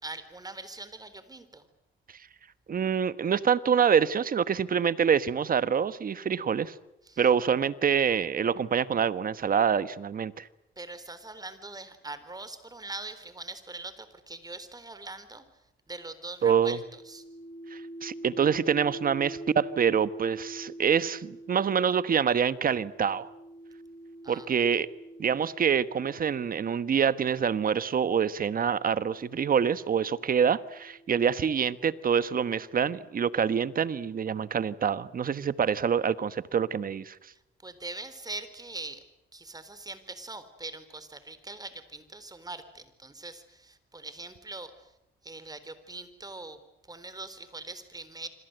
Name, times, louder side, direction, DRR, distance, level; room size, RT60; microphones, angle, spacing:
voice 1, 0.0-1.7 7.0-7.2 10.8-15.5 15.9-17.2 24.2-24.5 37.3-39.0 39.3-44.9 45.2-46.6 46.9-48.3, right 2 dB, 20° right, 12 dB, 3.9 m, -42 dB
voice 2, 2.7-6.7 7.2-10.5 16.4-16.8 17.7-23.3 24.3-24.9 25.2-37.3, right 7 dB, 45° right, 15 dB, 1.2 m, -26 dB
sound 1, 16.8-27.2 28.1-31.8, right 1 dB, 40° left, 7.6 m, -45 dB
27.0 x 25.5 x 8.0 m, 0.84 s
cardioid pair, 90°, 20 cm